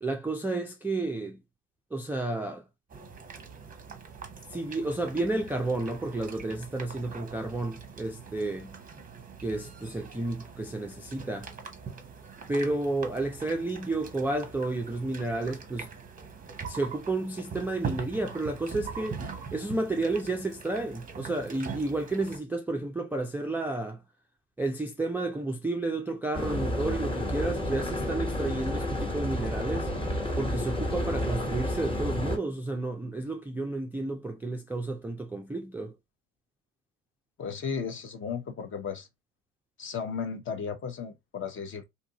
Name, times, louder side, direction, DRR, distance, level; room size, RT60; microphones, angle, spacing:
voice 1, 0.0-1.4 1.9-2.7 4.5-8.7 9.4-11.5 12.5-15.9 16.7-19.2 19.5-24.0 24.6-29.9 30.4-35.9, right 2 dB, 5° right, 0.4 m, -31 dB
sound 1, 2.9-22.4, right 6 dB, 20° right, 0.8 m, -42 dB
sound 2, 26.3-32.4, left 1 dB, 15° left, 1.2 m, -30 dB
voice 2, 37.4-39.1 39.8-41.9, left 6 dB, 35° left, 0.8 m, -35 dB
2.7 x 2.5 x 2.8 m
hypercardioid pair, 80°, 37 cm